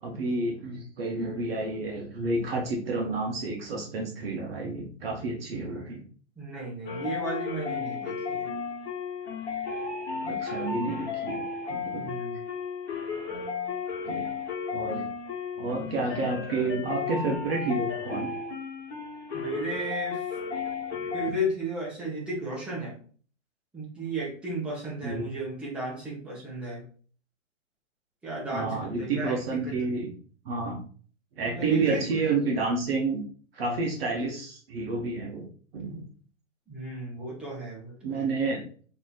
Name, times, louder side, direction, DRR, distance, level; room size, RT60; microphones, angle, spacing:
voice 1, 0.0-6.0 10.2-12.1 14.1-14.3 14.7-15.1 15.6-18.3 20.9-21.1 25.0-25.3 28.5-30.1 30.5-30.8 31.4-33.2 33.5-35.5 35.7-36.0 38.0-38.8, right 3 dB, 50° right, 1 dB, 0.7 m, -30 dB
voice 2, 6.4-8.5 12.0-12.4 19.3-20.2 21.1-23.0 23.7-26.8 28.2-29.8 31.6-32.1 36.7-38.3, right 1 dB, 5° right, -6 dB, 0.7 m, -34 dB
sound 1, 6.8-21.3, left 5 dB, 55° left, 1.1 m, -34 dB
3.0 x 2.6 x 2.2 m, 0.43 s
hypercardioid pair, 130°, 39 cm